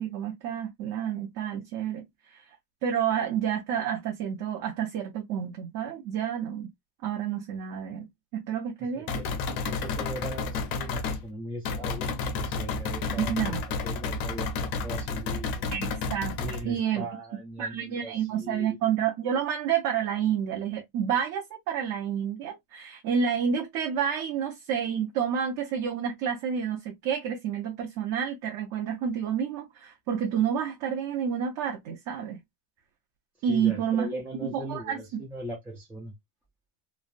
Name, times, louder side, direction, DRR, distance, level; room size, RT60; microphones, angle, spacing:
voice 1, 0.0-2.4 2.8-6.7 7.0-9.2 13.2-13.6 15.7-16.4 16.6-17.1 17.6-32.4 33.4-34.1 34.5-35.2, right 8 dB, 45° right, 0.6 m, -29 dB
voice 2, 8.8-15.7 16.4-18.8 33.5-36.1, right 1 dB, 5° right, 0.3 m, -40 dB
sound 1, 9.1-11.2 11.6-16.6, left 4 dB, 75° left, 1.1 m, -31 dB
3.3 x 2.0 x 2.5 m
cardioid pair, 165°, 47 cm